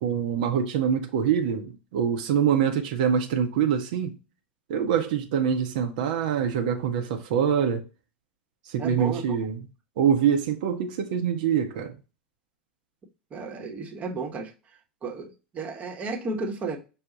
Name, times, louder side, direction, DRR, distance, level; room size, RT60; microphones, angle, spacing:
voice 1, 0.0-4.1 4.7-7.8 8.7-9.6 10.0-12.0, right 8 dB, 55° right, 0.6 m, -25 dB
voice 2, 8.8-9.4 13.3-14.5 15.0-16.8, right 3 dB, 25° right, 0.9 m, -33 dB
5.5 x 2.1 x 3.8 m
figure-of-eight pair, 85°, 5 cm